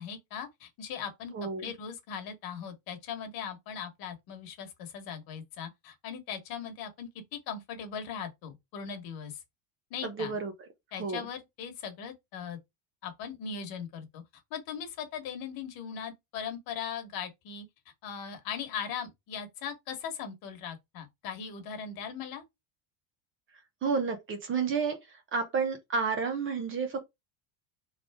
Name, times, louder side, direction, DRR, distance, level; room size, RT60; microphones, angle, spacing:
voice 1, 0.0-1.3 1.6-9.4 9.9-10.3 10.9-12.6 13.0-14.2 14.5-17.6 18.0-22.4, left 7 dB, 55° left, 1.3 m, -39 dB
voice 2, 1.3-1.7 10.0-10.5 11.0-11.2 23.8-27.0, right 5 dB, 30° right, 0.8 m, -31 dB
3.7 x 3.4 x 3.5 m
cardioid pair, 150°, 44 cm